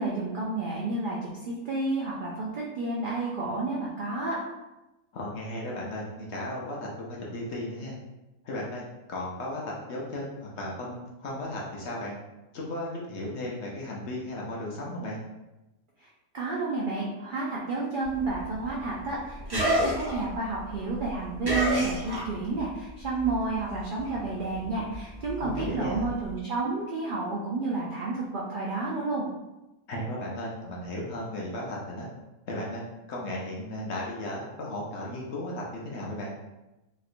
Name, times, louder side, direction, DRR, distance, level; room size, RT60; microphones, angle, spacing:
voice 1, 0.0-4.4 16.3-29.2, right 3 dB, 75° right, -5 dB, 0.4 m, -30 dB
voice 2, 5.1-8.0 8.4-8.8 9.1-12.2 12.5-15.2 25.4-26.1 29.9-32.1 32.5-32.8 33.1-36.3, left 1 dB, 60° left, -3 dB, 0.8 m, -35 dB
sound 1, 18.0-22.7 23.0-26.3, equal, 25° right, 0.6 m, -31 dB
3.1 x 2.8 x 2.5 m, 1.0 s
omnidirectional pair, 1.5 m